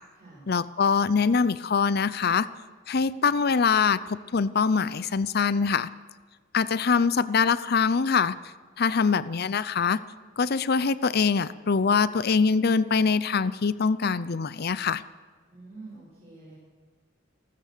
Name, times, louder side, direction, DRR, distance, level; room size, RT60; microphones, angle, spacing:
voice 1, 0.5-2.5 2.9-5.9 6.5-8.3 8.8-10.0 10.4-15.0, left 5 dB, 55° left, 16 dB, 0.6 m, -23 dB
voice 2, 15.5-16.6, right 3 dB, 35° right, -7 dB, 6.6 m, -46 dB
29.5 x 13.5 x 6.7 m, 1.5 s
head